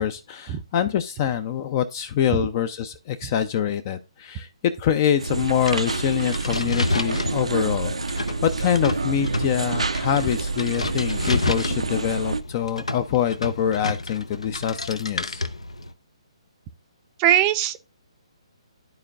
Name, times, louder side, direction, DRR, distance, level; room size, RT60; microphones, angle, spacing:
voice 1, 0.0-4.5 4.8-15.4, left 9 dB, 35° left, 0.5 m, -25 dB
sound 1, 5.2-12.4, right 3 dB, 80° right, 0.5 m, -28 dB
sound 2, 5.4-15.9, left 2 dB, 85° left, 0.8 m, -31 dB
voice 2, 17.2-17.8, right 11 dB, 25° right, 0.5 m, -20 dB
12.5 x 4.5 x 2.4 m
figure-of-eight pair, 135°, 3 cm